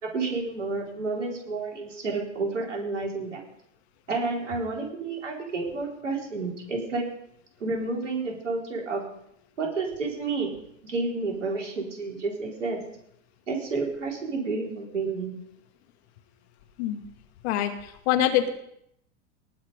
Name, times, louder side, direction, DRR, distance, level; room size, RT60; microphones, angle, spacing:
voice 1, 0.0-3.4 4.1-7.0 7.6-9.0 9.6-10.5 10.8-12.8 13.5-15.4, right 3 dB, 90° right, -1 dB, 4.4 m, -30 dB
voice 2, 17.4-18.5, left 11 dB, 65° left, 7 dB, 2.0 m, -25 dB
19.0 x 6.5 x 5.2 m, 0.74 s
hypercardioid pair, 95°, 36 cm